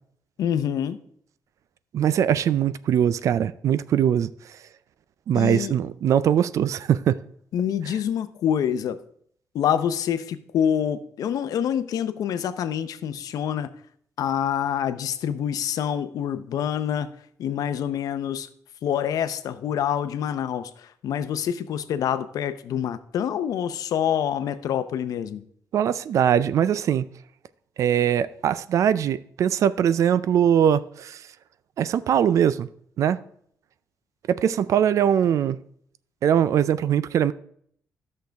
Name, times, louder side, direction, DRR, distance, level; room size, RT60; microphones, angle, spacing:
voice 1, 0.4-1.0 5.3-5.7 7.5-9.0 9.5-13.7 14.2-17.1 17.4-18.5 18.8-25.4, left 9 dB, 80° left, 0.6 m, -26 dB
voice 2, 1.9-4.3 5.3-7.2 25.7-27.1 27.8-31.2 31.8-32.7 33.0-33.2 34.3-35.6 36.2-37.3, right 9 dB, 60° right, 0.4 m, -21 dB
13.0 x 6.5 x 3.4 m
wide cardioid pair, 180°, 6 cm